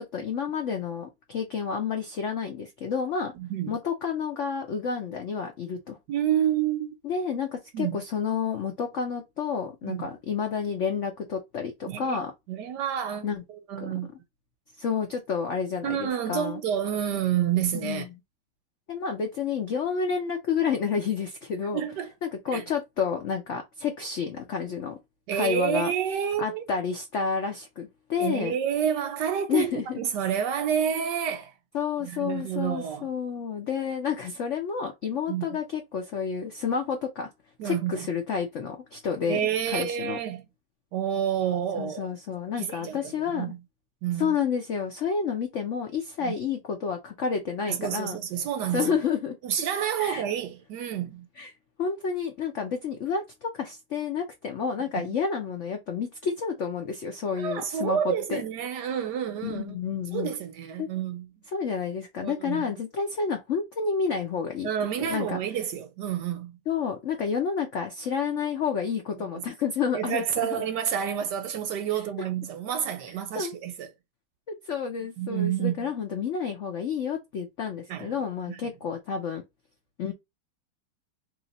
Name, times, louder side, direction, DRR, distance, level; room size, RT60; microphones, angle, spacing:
voice 1, 0.0-3.3 3.7-6.0 7.0-12.3 13.2-13.4 13.8-13.9 14.8-16.6 17.7-18.1 18.9-21.8 22.2-25.0 25.3-25.9 26.4-28.6 29.5-30.0 31.7-37.3 37.6-39.4 39.7-40.2 41.7-43.5 44.2-48.2 48.7-49.4 50.0-50.2 51.4-51.5 51.8-58.4 59.4-60.3 60.8-60.9 61.5-64.7 65.0-65.4 66.7-70.6 73.3-73.6 74.7-79.4 80.0-80.1, left 6 dB, 80° left, 0.6 m, -30 dB
voice 2, 3.4-3.8 6.1-7.0 7.7-8.0 9.8-10.1 11.9-12.2 12.5-14.1 15.8-18.1 21.7-22.1 22.5-22.6 25.3-26.7 28.2-31.5 32.0-33.1 35.1-35.5 37.6-38.1 39.3-40.4 40.9-42.1 42.6-43.6 44.0-44.4 46.2-46.3 47.7-49.0 49.4-51.3 57.3-59.8 60.1-61.3 62.2-62.7 64.6-66.6 69.3-69.4 69.9-73.9 75.2-75.8 77.9-78.1 78.5-78.6, right 9 dB, 70° right, 1.1 m, -29 dB
3.1 x 2.8 x 4.0 m
omnidirectional pair, 2.1 m